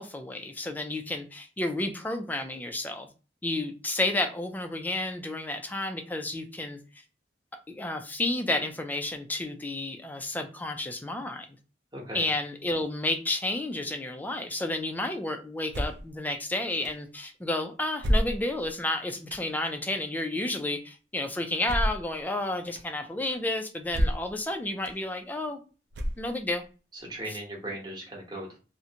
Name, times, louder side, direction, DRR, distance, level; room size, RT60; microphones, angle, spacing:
voice 1, 0.0-3.1 3.4-6.8 7.7-11.5 12.1-25.6 26.2-26.6, left 2 dB, 10° left, 6 dB, 0.3 m, -31 dB
voice 2, 11.9-12.3 26.9-28.6, right 1 dB, 25° right, -2 dB, 0.9 m, -38 dB
sound 1, 15.7-16.1 16.8-16.9 18.0-18.7 19.3-19.5 21.6-22.1 22.8-22.9 23.9-24.4 24.8-24.9 25.9-26.5, equal, 65° right, 0.4 m, -28 dB
2.5 x 2.1 x 2.7 m, 0.34 s
head